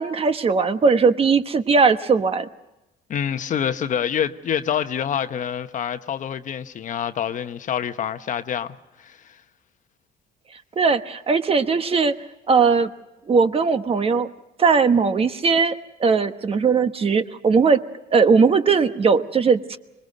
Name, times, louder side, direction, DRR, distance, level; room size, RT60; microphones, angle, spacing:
voice 1, 0.0-2.5 10.8-12.1 12.5-12.9 13.3-14.3 14.6-15.7 16.0-17.8 18.1-19.8, right 5 dB, 35° right, 1.2 m, -19 dB
voice 2, 3.1-9.4, left 8 dB, 50° left, 1.0 m, -27 dB
25.5 x 21.0 x 6.7 m
cardioid pair, 110°, 17 cm